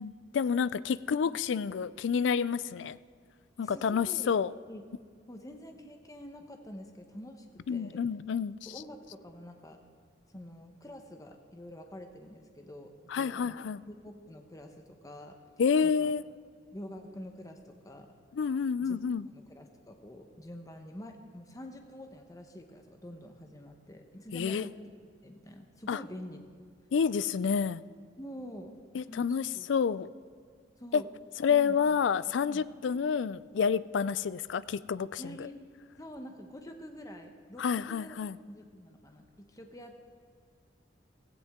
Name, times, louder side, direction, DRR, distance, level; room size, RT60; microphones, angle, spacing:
voice 1, 0.0-3.0 3.6-4.5 7.7-8.6 13.1-13.8 15.6-16.2 18.3-19.3 24.3-24.7 25.9-26.0 26.9-27.9 28.9-30.1 30.9-31.0 31.4-35.5 37.6-38.4, left 6 dB, 70° left, 17 dB, 0.4 m, -29 dB
voice 2, 3.6-4.3 4.7-4.8 5.3-7.5 7.7-8.0 8.7-9.8 10.3-13.6 13.9-15.4 15.8-16.1 16.7-18.1 18.8-19.0 19.3-24.7 25.2-26.4 28.2-29.7 30.8-31.1 31.5-31.8 32.4-32.6 35.2-35.6 36.0-38.2 38.5-40.1, left 1 dB, 20° left, 4 dB, 1.0 m, -47 dB
16.0 x 16.0 x 3.6 m, 2.1 s
head